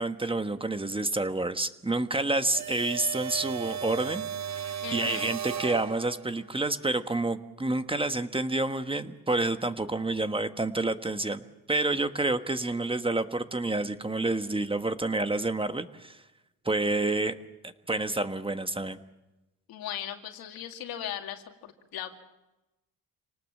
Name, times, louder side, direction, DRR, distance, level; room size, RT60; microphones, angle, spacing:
voice 1, 0.0-11.4 11.7-16.2 16.6-17.3 17.6-19.0, right 2 dB, 15° right, 9 dB, 1.3 m, -29 dB
sound 1, 2.5-6.4, right 8 dB, 50° right, 1.3 m, -35 dB
voice 2, 4.8-5.3 19.7-22.2, left 10 dB, 90° left, 5 dB, 2.4 m, -38 dB
27.0 x 19.0 x 7.3 m, 0.99 s
cardioid pair, 95°, 35 cm